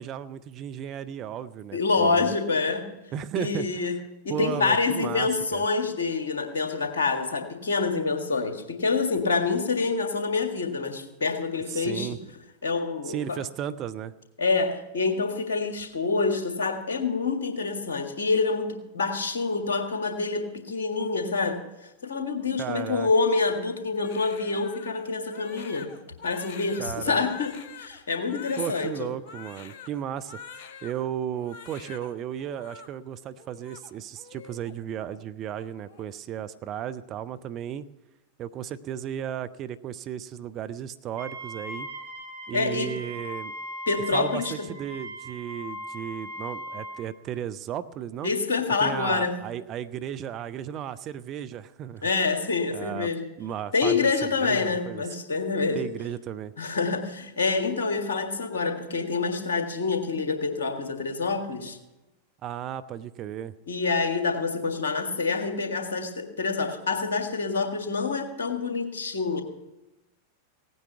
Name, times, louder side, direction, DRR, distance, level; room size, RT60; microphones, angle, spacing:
voice 1, 0.0-2.3 3.1-3.9 4.3-5.6 11.7-12.2 13.1-14.1 22.6-23.1 26.8-27.2 28.6-30.4 30.8-37.9 38.4-41.9 42.5-43.5 44.1-48.3 48.8-52.1 52.7-53.1 53.4-55.0 55.7-56.5 62.4-63.5, right 10 dB, 35° right, 13 dB, 0.6 m, -34 dB
voice 2, 1.7-2.9 3.4-12.1 12.6-13.4 14.4-21.6 22.0-25.9 26.2-29.1 42.5-42.9 43.9-44.7 48.2-49.4 52.0-53.3 53.7-55.9 56.6-61.8 63.7-69.4, left 4 dB, 65° left, 6 dB, 1.8 m, -27 dB
Crying sobbing, 24.0-31.0 31.3-32.1 32.4-32.9 33.4-34.7 35.0-35.2 35.6-36.1, left 6 dB, 45° left, 1.4 m, -46 dB
Wind instrument woodwind instrument, 41.2-47.1, equal, 60° right, 3.2 m, -39 dB
17.0 x 9.5 x 5.9 m, 0.99 s
figure-of-eight pair, 90°, 0 cm